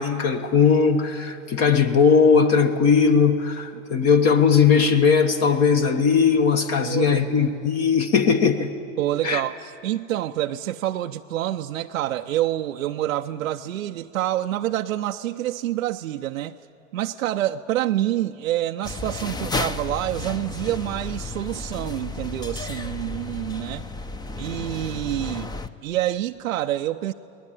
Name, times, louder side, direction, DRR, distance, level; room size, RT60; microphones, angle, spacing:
voice 1, 0.0-8.7 9.2-9.4, left 6 dB, 40° left, 1.3 m, -19 dB
voice 2, 6.8-7.2 9.0-16.6 16.9-23.9 24.4-25.5 25.8-27.1, right 13 dB, 90° right, 0.6 m, -27 dB
sound 1, 18.8-25.7, left 3 dB, 10° left, 0.7 m, -32 dB
22.5 x 19.0 x 9.1 m
hypercardioid pair, 110°, 39 cm